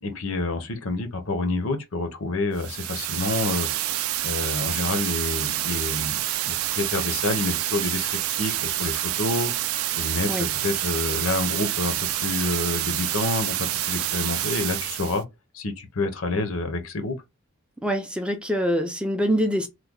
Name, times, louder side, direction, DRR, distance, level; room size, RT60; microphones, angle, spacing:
voice 1, 0.0-3.7 4.2-9.5 10.0-15.2 15.5-17.2, left 3 dB, 70° left, 0.8 m, -28 dB
sound 1, 2.5-15.2, right 14 dB, 75° right, 0.4 m, -27 dB
voice 2, 17.8-19.7, equal, 5° right, 0.4 m, -24 dB
3.2 x 2.2 x 3.6 m
head